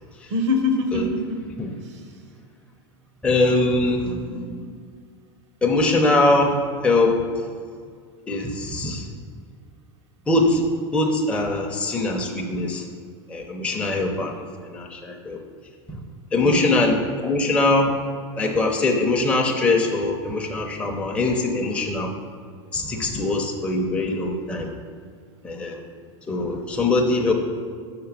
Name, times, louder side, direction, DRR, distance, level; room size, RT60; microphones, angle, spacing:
voice 1, 0.3-1.4 4.0-4.7 16.4-16.7, left 2 dB, 75° right, 5 dB, 0.9 m, -25 dB
voice 2, 3.2-4.2 5.6-7.4 8.3-9.1 10.3-12.9 13.3-15.4 15.9-16.0 16.3-17.9 18.4-22.1 22.7-24.7 25.4-25.8 26.3-27.3, left 2 dB, 5° left, 0 dB, 0.6 m, -22 dB
5.8 x 4.5 x 5.8 m, 2.1 s
supercardioid pair, 125°, 15 cm